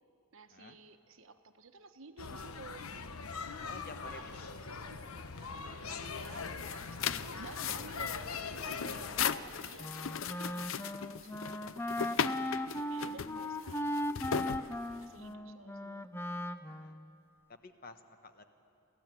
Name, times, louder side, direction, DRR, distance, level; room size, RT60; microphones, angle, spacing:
voice 1, 0.3-2.9 3.6-4.2 5.0-12.3 12.8-13.9 14.2-14.7 15.0-16.2, right 3 dB, 65° right, 8 dB, 1.1 m, -53 dB
sound 1, 2.2-9.4, left 4 dB, 85° left, 1.1 m, -42 dB
voice 2, 3.6-4.6 13.0-13.8 16.7-17.0 17.5-18.4, left 2 dB, 40° left, 8 dB, 1.2 m, -52 dB
sound 2, 6.1-15.3, left 7 dB, 65° left, 0.6 m, -38 dB
Wind instrument woodwind instrument, 9.8-17.1, left 1 dB, 10° left, 0.5 m, -38 dB
28.0 x 14.0 x 9.2 m, 2.6 s
head